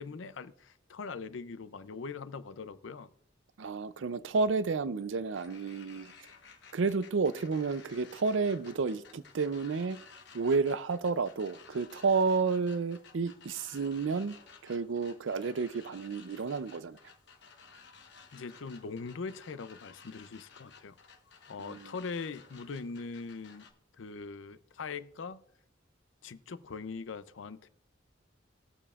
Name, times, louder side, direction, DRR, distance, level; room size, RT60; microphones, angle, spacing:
voice 1, 0.0-3.1 18.3-21.0 21.5-23.7 24.0-25.4 26.2-27.7, left 4 dB, 85° left, 0.5 m, -41 dB
voice 2, 3.6-6.1 6.7-10.0 10.3-14.4 14.6-17.0 21.6-22.0, right 4 dB, 80° right, 0.5 m, -31 dB
sound 1, 5.3-23.7, left 5 dB, 65° left, 1.1 m, -56 dB
19.5 x 6.9 x 2.4 m
head